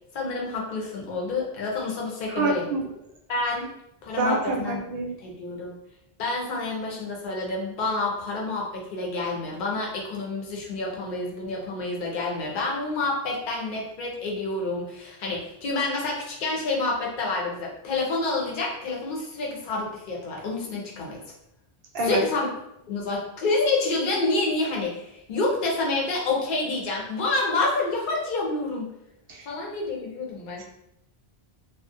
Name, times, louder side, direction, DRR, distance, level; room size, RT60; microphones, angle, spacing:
voice 1, 0.1-2.7 3.3-3.7 4.0-4.8 5.2-5.8 6.2-21.2 22.0-22.5 22.9-28.9 29.5-30.6, left 3 dB, 55° left, -2 dB, 0.7 m, -28 dB
voice 2, 2.3-2.8 4.2-5.1 21.9-22.2 29.3-29.5 30.6-30.7, right 3 dB, 70° right, 0 dB, 0.8 m, -26 dB
2.4 x 2.0 x 2.5 m, 0.84 s
omnidirectional pair, 1.0 m